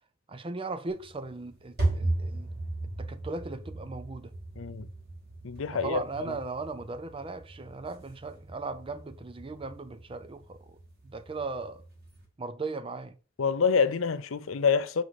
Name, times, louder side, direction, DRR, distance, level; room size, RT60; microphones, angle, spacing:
voice 1, 0.3-2.5 3.0-4.3 5.7-10.8 11.0-11.8 12.4-13.1, right 3 dB, 25° right, 0.5 m, -37 dB
sound 1, 0.9-12.2, right 2 dB, 55° right, 2.6 m, -37 dB
voice 2, 4.6-4.9 5.4-6.3 13.4-15.0, left 5 dB, 85° left, 0.6 m, -27 dB
6.2 x 4.8 x 4.1 m
head